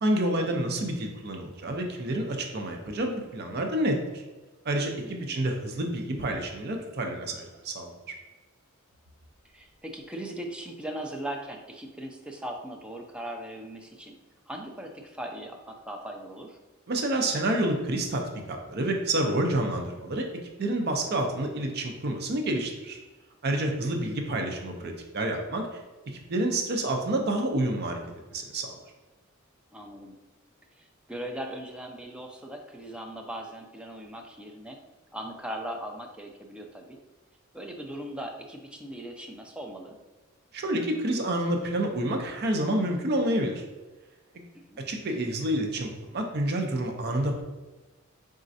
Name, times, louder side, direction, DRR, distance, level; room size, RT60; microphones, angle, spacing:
voice 1, 0.0-4.0 4.6-8.1 16.9-18.2 18.5-20.2 20.6-23.0 23.4-25.8 26.1-28.0 28.3-28.8 40.5-43.6 44.3-44.4 44.9-47.4, right 1 dB, 50° right, 3 dB, 0.6 m, -28 dB
voice 2, 5.0-5.4 9.5-14.1 14.5-16.6 23.8-24.1 29.7-30.2 30.8-34.8 35.1-37.0 37.5-40.0 44.5-44.8, right 1 dB, 5° right, 2 dB, 0.4 m, -39 dB
4.2 x 3.6 x 2.6 m, 1.2 s
head